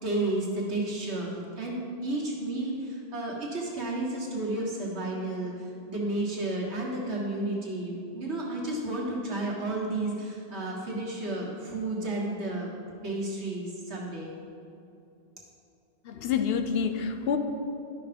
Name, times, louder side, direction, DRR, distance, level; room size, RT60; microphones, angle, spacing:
voice 1, 0.0-12.7 13.0-14.4, right 2 dB, 85° right, -4 dB, 1.9 m, -32 dB
voice 2, 16.0-17.4, left 6 dB, 70° left, 7 dB, 0.8 m, -27 dB
12.0 x 5.8 x 5.1 m, 2.6 s
omnidirectional pair, 1.1 m